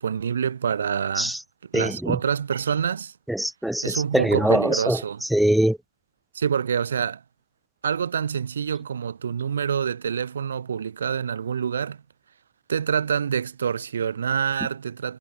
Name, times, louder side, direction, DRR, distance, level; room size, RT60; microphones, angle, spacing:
voice 1, 0.0-1.3 1.7-3.1 3.8-5.2 6.3-7.2 7.8-12.0 12.7-15.2, right 7 dB, 70° right, 6.7 m, -26 dB
voice 2, 1.7-2.2 3.3-5.0 5.3-5.8, right 1 dB, ahead, 2.7 m, -22 dB
figure-of-eight pair, 90°, 0 cm